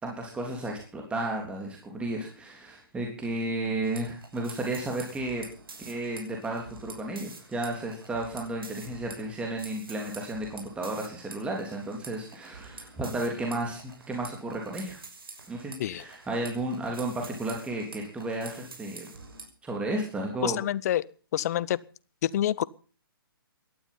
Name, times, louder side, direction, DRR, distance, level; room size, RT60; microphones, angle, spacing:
voice 1, 0.0-5.4 5.8-15.0 15.5-19.1 19.6-20.6, right 2 dB, 10° right, 3.4 m, -33 dB
sound 1, 3.8-19.5, right 4 dB, 70° right, 6.2 m, -48 dB
voice 2, 20.4-21.0 21.3-21.8 22.2-22.6, left 12 dB, 45° left, 0.8 m, -27 dB
18.0 x 12.5 x 5.6 m
figure-of-eight pair, 130°, 12 cm